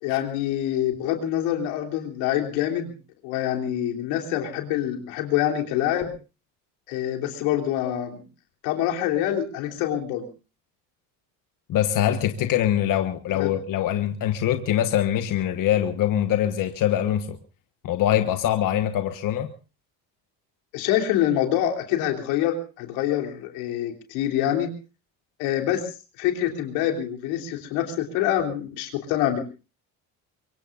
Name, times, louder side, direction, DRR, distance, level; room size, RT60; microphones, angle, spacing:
voice 1, 0.0-2.9 3.2-6.1 6.9-8.2 8.6-10.3 13.3-13.5 20.7-24.7 25.4-25.9 26.2-29.4, left 11 dB, 90° left, 3.4 m, -25 dB
voice 2, 11.7-17.4 17.8-19.5, left 11 dB, 60° left, 1.4 m, -23 dB
24.0 x 23.5 x 2.6 m
cardioid pair, 100°, 37 cm